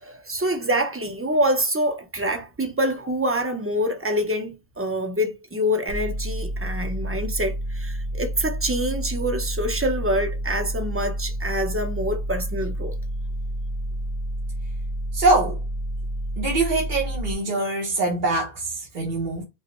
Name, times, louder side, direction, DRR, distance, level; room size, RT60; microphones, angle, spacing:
voice 1, 0.0-12.9, equal, 15° right, 0.6 m, -26 dB
sound 1, 5.9-17.3, right 1 dB, 75° right, 1.6 m, -29 dB
voice 2, 15.1-15.6 16.4-19.4, right 2 dB, 45° right, 1.0 m, -23 dB
5.4 x 2.0 x 3.1 m
omnidirectional pair, 1.1 m